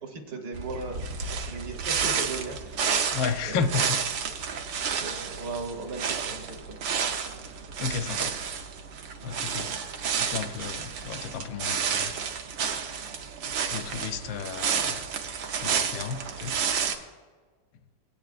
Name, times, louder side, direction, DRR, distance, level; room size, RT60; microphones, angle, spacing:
voice 1, 0.0-2.9 3.4-3.9 4.6-6.8 7.2-7.5, right 3 dB, 60° right, 2 dB, 1.7 m, -38 dB
sound 1, 0.5-17.0, right 6 dB, 80° right, 1.5 m, -31 dB
voice 2, 3.1-4.0 7.8-8.3 9.2-9.7 10.2-12.2 13.7-15.0 15.6-16.6, left 6 dB, 85° left, 8 dB, 1.4 m, -32 dB
17.0 x 9.0 x 2.5 m, 1.5 s
omnidirectional pair, 2.0 m